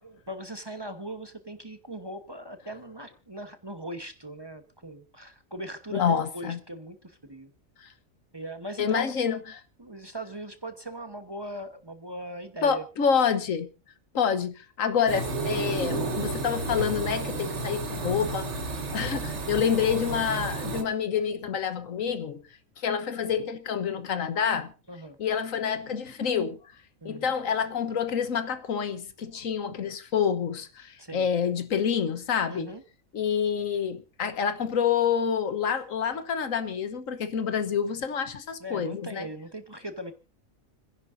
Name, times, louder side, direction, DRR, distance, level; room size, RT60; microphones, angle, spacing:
voice 1, 0.0-7.5 8.3-9.1 9.8-12.8 24.9-25.2 27.0-27.3 31.0-31.3 32.5-32.8 38.6-40.1, right 1 dB, 20° right, 1.1 m, -39 dB
voice 2, 5.9-6.6 7.8-7.9 8.8-9.6 12.6-13.7 14.1-18.5 18.9-22.4 22.8-24.7 25.2-26.6 27.0-32.7 33.1-39.3, left 7 dB, 80° left, 1.5 m, -27 dB
sound 1, 15.1-20.8, right 3 dB, 60° right, 1.7 m, -31 dB
30.0 x 10.5 x 2.6 m
omnidirectional pair, 1.4 m